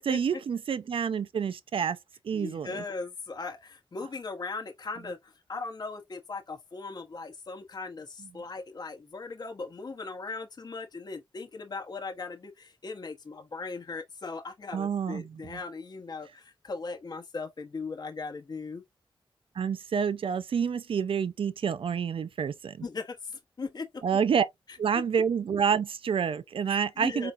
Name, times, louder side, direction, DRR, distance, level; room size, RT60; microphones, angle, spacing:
voice 1, 0.1-2.0 2.2-2.8 14.7-15.6 19.6-22.8 24.0-24.5 24.8-27.3, right 7 dB, 70° right, 0.5 m, -28 dB
voice 2, 2.3-18.8 22.8-23.9 24.7-24.8 26.7-27.3, left 4 dB, 45° left, 0.9 m, -38 dB
4.4 x 3.9 x 2.5 m
wide cardioid pair, 110°, 9 cm